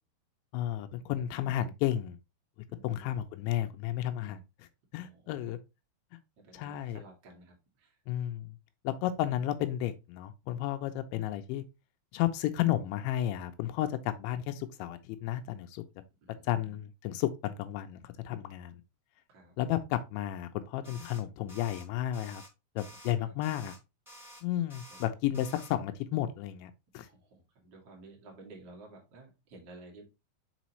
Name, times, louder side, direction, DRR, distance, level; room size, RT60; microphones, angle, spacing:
voice 1, 0.5-2.2 2.8-4.7 4.9-5.6 6.5-7.0 8.1-8.6 8.8-11.6 12.1-15.8 16.4-18.8 19.6-22.4 22.8-23.7 24.4-27.1, left 12 dB, 85° left, 2.7 m, -32 dB
voice 2, 2.7-3.1 4.9-5.6 6.4-8.0 16.2-16.7 19.3-19.5 22.9-23.3 24.9-25.1 26.9-30.0, right 2 dB, 80° right, 0.9 m, -54 dB
sound 1, 20.8-21.2 21.5-21.8 22.1-22.5 22.8-23.1 23.4-23.8 24.0-24.4 24.7-25.1 25.3-25.7, equal, ahead, 0.8 m, -51 dB
6.2 x 5.0 x 3.0 m
omnidirectional pair, 5.7 m